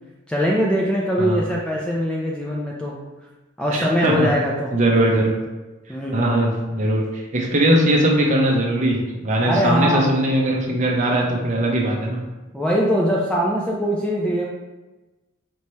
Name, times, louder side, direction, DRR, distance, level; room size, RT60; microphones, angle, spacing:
voice 1, 0.3-3.0 3.6-4.7 5.9-6.4 9.4-10.1 12.5-14.5, equal, 5° left, -4 dB, 0.3 m, -22 dB
voice 2, 3.7-4.3 4.7-5.4 6.1-12.2, right 1 dB, 35° right, -1 dB, 0.6 m, -20 dB
4.5 x 2.8 x 3.1 m, 1.1 s
head